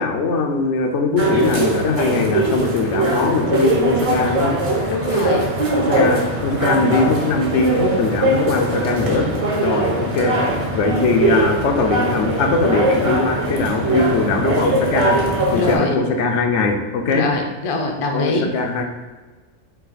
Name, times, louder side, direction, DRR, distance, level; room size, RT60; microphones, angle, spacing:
voice 1, 0.0-4.6 5.8-9.3 9.6-15.2 15.5-17.3 18.1-18.9, left 3 dB, 75° left, 4 dB, 0.9 m, -20 dB
sound 1, 1.2-15.8, right 2 dB, 35° right, 0.6 m, -21 dB
voice 2, 4.9-5.5 15.5-16.0 17.1-18.5, left 3 dB, 45° left, 2 dB, 0.4 m, -23 dB
4.7 x 2.8 x 4.0 m, 1.3 s
omnidirectional pair, 1.3 m